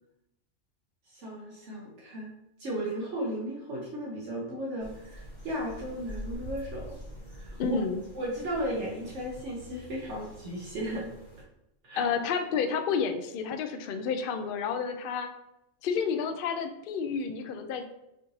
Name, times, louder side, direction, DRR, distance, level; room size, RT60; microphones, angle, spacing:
voice 1, 1.1-2.3 2.6-7.0 7.3-7.8 8.1-11.0 11.8-12.1, equal, 70° right, -3 dB, 1.1 m, -35 dB
sound 1, 4.8-11.4, equal, 25° left, 1.2 m, -45 dB
voice 2, 7.6-8.0 12.0-15.3 15.8-17.9, left 6 dB, 60° left, 7 dB, 0.6 m, -30 dB
5.6 x 2.6 x 3.1 m, 0.85 s
omnidirectional pair, 1.3 m